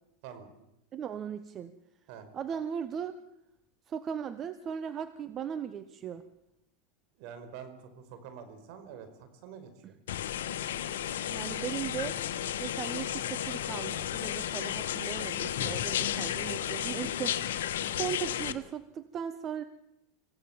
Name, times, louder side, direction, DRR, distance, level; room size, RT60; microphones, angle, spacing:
voice 1, 0.9-1.7 2.3-3.2 3.9-6.2 9.8-9.9 11.3-12.1 12.6-17.5 18.0-19.6, right 8 dB, 35° right, 11 dB, 1.2 m, -37 dB
voice 2, 7.2-10.0 16.0-17.1, right 7 dB, 60° right, 9 dB, 5.0 m, -47 dB
sound 1, 10.1-18.5, left 11 dB, 80° left, 1.5 m, -33 dB
26.0 x 16.5 x 7.3 m, 0.85 s
hypercardioid pair, 110°, 0 cm